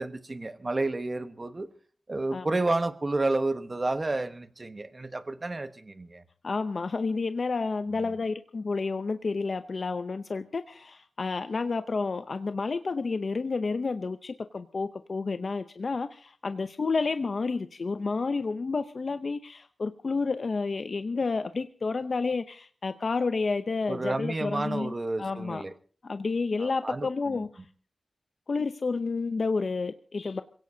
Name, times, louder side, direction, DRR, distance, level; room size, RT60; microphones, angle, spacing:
voice 1, 0.0-1.7 2.1-6.2 8.0-8.2 23.9-25.7 26.6-27.4, right 2 dB, 35° right, 10 dB, 1.2 m, -31 dB
voice 2, 2.3-2.6 6.4-24.9 25.2-25.6 26.0-27.5 28.5-30.4, left 4 dB, 65° left, 9 dB, 0.7 m, -30 dB
26.5 x 17.0 x 2.7 m, 0.43 s
wide cardioid pair, 75°, 0 cm